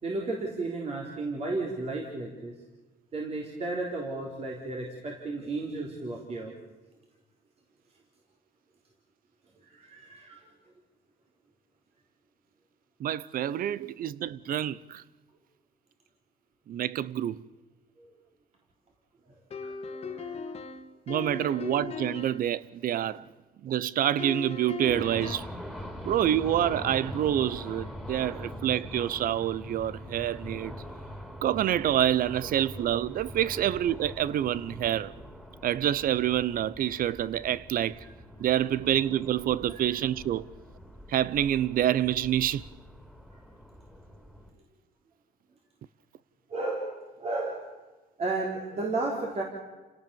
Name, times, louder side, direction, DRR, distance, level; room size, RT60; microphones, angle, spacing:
voice 1, 0.0-2.5 3.1-6.5 9.6-10.5 18.0-18.1 19.6-20.6 21.2-21.3 23.1-23.2 25.8-26.0 39.7-39.9 43.3-43.4 46.5-47.7 48.2-49.4, right 2 dB, 40° right, 3.8 m, -34 dB
voice 2, 13.0-15.0 16.7-17.4 21.1-23.3 23.6-25.5 26.0-30.7 31.4-35.1 35.6-38.0 38.4-40.5 41.1-42.7, right 11 dB, 55° right, 0.8 m, -27 dB
sound 1, 19.5-22.5 24.2-25.6, left 5 dB, 35° left, 1.8 m, -38 dB
sound 2, 24.9-44.5, left 1 dB, 5° right, 4.1 m, -43 dB
29.5 x 17.5 x 7.1 m
cardioid pair, 110°, 17 cm